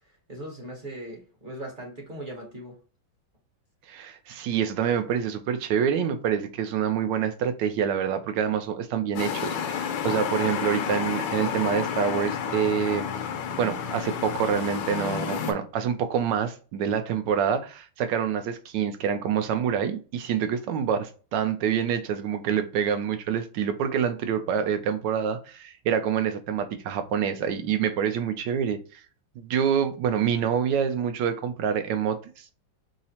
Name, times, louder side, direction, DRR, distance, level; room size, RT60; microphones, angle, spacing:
voice 1, 0.3-2.8, right 1 dB, 40° right, 0.8 m, -39 dB
voice 2, 3.9-13.0 13.6-29.0 29.4-32.5, right 8 dB, 75° right, 1.1 m, -26 dB
sound 1, 9.2-15.5, left 7 dB, 75° left, 1.4 m, -30 dB
5.4 x 2.0 x 2.8 m
omnidirectional pair, 2.2 m